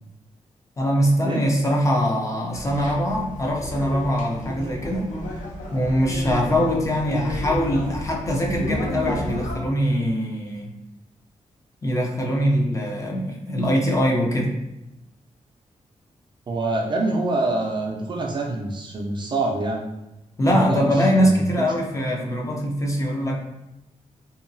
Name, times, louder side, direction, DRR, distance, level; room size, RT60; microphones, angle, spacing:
voice 1, 0.8-5.1 5.7-10.7 11.8-14.6 20.4-23.5, equal, 25° left, -1 dB, 0.4 m, -22 dB
sound 1, 2.5-9.6, equal, 85° left, 0.7 m, -32 dB
voice 2, 16.5-19.9 20.5-21.5, right 2 dB, 40° right, 0 dB, 0.4 m, -26 dB
2.7 x 2.3 x 2.6 m, 0.91 s
wide cardioid pair, 165°, 13 cm